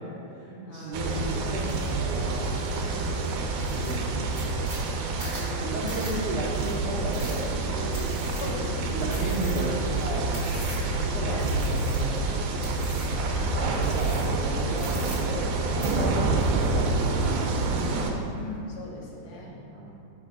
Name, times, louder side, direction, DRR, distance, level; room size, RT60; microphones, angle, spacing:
voice 1, 0.0-2.5 3.2-3.4 3.7-5.0 5.6-8.3 8.9-10.3 10.6-13.2 13.5-15.4 15.7-18.2 19.2-19.9, right 1 dB, 65° right, -9 dB, 1.7 m, -35 dB
voice 2, 0.6-1.0 2.8-3.7 5.5-5.9 8.4-9.4 10.2-10.3 10.9-11.0 11.3-11.6 18.3-19.6, left 2 dB, 70° left, -2 dB, 1.3 m, -41 dB
sound 1, 0.9-18.1, right 3 dB, 80° right, 2.0 m, -28 dB
sound 2, 1.7-1.9 2.4-2.9 3.2-3.3 3.6-11.0 11.4-12.2 12.6-13.2 13.8-14.4 14.7-15.5 15.8-17.0 17.3-17.9, right 1 dB, 30° right, 1.3 m, -43 dB
5.2 x 4.3 x 5.7 m, 2.7 s
omnidirectional pair, 3.4 m